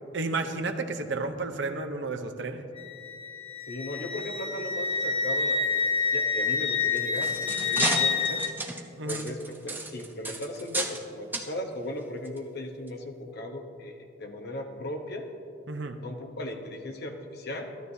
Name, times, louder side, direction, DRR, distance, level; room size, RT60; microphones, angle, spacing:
voice 1, 0.1-2.7 9.0-9.2 15.7-16.0, right 3 dB, 70° right, 6 dB, 0.8 m, -32 dB
Wind instrument woodwind instrument, 2.8-8.5, left 5 dB, 30° left, 0.6 m, -28 dB
voice 2, 3.7-8.4 9.0-15.3 16.0-17.7, left 1 dB, 60° left, 4 dB, 1.0 m, -37 dB
sound 1, 6.8-11.0 11.3-11.5 12.2-12.4 12.9-13.0, right 2 dB, 10° right, 0.6 m, -33 dB
14.0 x 12.5 x 2.8 m, 2.6 s
head